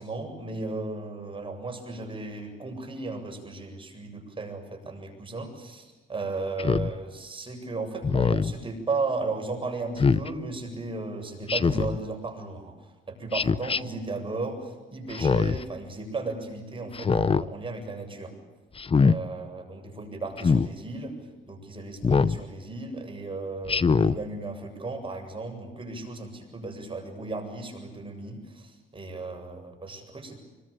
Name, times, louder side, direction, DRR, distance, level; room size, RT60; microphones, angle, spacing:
voice 1, 0.0-12.7 13.1-18.3 19.0-21.1 21.5-30.4, right 3 dB, 25° right, 4 dB, 7.9 m, -35 dB
Speech synthesizer, 6.6-6.9 8.0-8.5 10.0-10.3 11.5-12.0 13.3-13.8 15.1-15.6 16.9-17.4 18.8-19.2 20.4-20.7 22.0-22.4 23.7-24.2, left 5 dB, 30° left, 0.8 m, -22 dB
25.5 x 22.5 x 8.8 m, 1.2 s
cardioid pair, 90°, 20 cm